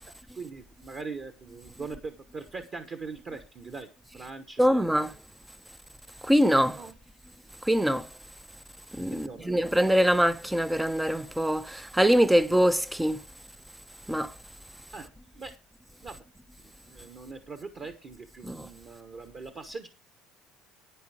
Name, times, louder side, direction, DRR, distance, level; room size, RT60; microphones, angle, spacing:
voice 1, 0.0-3.9 4.1-5.1 6.7-6.9 9.1-9.8 14.9-15.1 15.3-15.5 16.0-16.2 16.6-19.9, right 4 dB, 25° right, 1.1 m, -41 dB
voice 2, 4.6-5.1 6.2-6.8 7.6-8.1 8.9-13.2 14.1-14.3 18.4-18.7, equal, 5° right, 0.5 m, -23 dB
10.0 x 9.8 x 4.9 m
cardioid pair, 175°, 0 cm